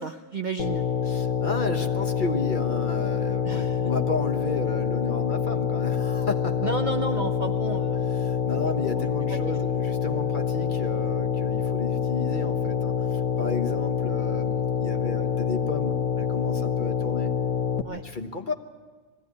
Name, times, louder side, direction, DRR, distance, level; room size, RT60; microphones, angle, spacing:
voice 1, 0.0-0.8 3.4-3.9 6.6-8.2 17.8-18.0, right 3 dB, 45° right, 6 dB, 0.7 m, -32 dB
sound 1, 0.6-17.8, left 7 dB, 90° left, 1.4 m, -26 dB
voice 2, 1.0-6.7 8.1-17.4 17.9-18.5, left 3 dB, 40° left, 5 dB, 1.3 m, -33 dB
20.5 x 15.5 x 9.7 m, 1.4 s
omnidirectional pair, 1.4 m